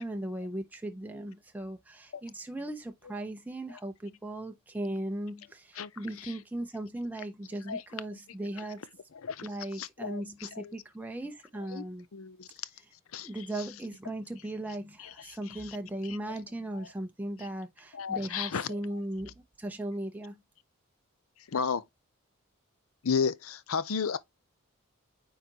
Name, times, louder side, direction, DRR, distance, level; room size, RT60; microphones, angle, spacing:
voice 1, 0.0-8.8 9.4-12.1 13.2-20.4, right 1 dB, 5° right, 0.6 m, -37 dB
voice 2, 5.8-6.4 7.7-7.8 8.1-8.2 8.6-8.7 9.2-10.7 11.7-11.8 12.1-12.5 13.1-13.8 15.0-15.1 15.4-15.8 16.0-16.3 17.4-17.5 17.9-19.0 21.5-21.8 23.0-24.2, left 6 dB, 70° left, 0.6 m, -34 dB
9.2 x 3.9 x 2.8 m
head